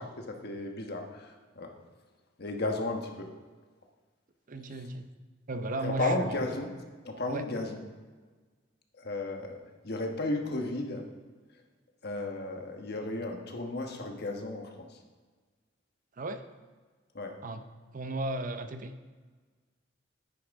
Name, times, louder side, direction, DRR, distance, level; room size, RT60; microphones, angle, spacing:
voice 1, 0.0-1.7 2.4-3.3 5.8-6.7 7.0-7.8 9.0-9.6 9.8-11.1 12.0-14.9 17.1-17.3, left 2 dB, 55° left, 3 dB, 1.3 m, -34 dB
voice 2, 4.5-5.1 5.5-6.4 7.3-7.5 16.2-16.4 17.4-17.6 17.9-18.9, right 2 dB, 45° right, 9 dB, 0.6 m, -35 dB
10.0 x 9.4 x 3.6 m, 1.4 s
head